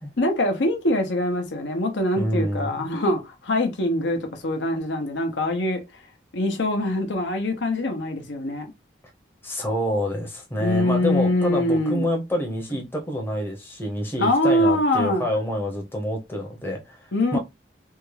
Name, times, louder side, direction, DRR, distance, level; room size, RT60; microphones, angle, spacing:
voice 1, 0.2-5.8 6.3-8.7 10.6-12.1 14.2-15.2 17.1-17.4, left 1 dB, 70° left, 0.8 m, -23 dB
voice 2, 2.2-2.9 9.4-17.4, equal, 10° left, 0.7 m, -27 dB
3.6 x 2.3 x 3.2 m
head